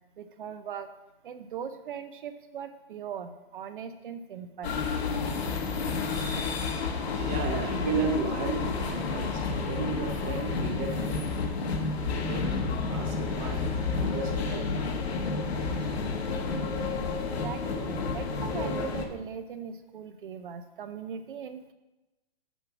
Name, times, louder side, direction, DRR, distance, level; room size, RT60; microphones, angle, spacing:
voice 1, 0.2-0.9 1.2-4.8 17.2-21.7, right 7 dB, 55° right, 10 dB, 0.6 m, -39 dB
sound 1, 4.6-19.1, left 4 dB, 85° left, 1.4 m, -30 dB
voice 2, 7.1-11.2 12.1-13.7 14.0-14.7, right 4 dB, 15° right, 3 dB, 0.7 m, -34 dB
8.0 x 6.1 x 5.9 m, 1.0 s
hypercardioid pair, 170°, 31 cm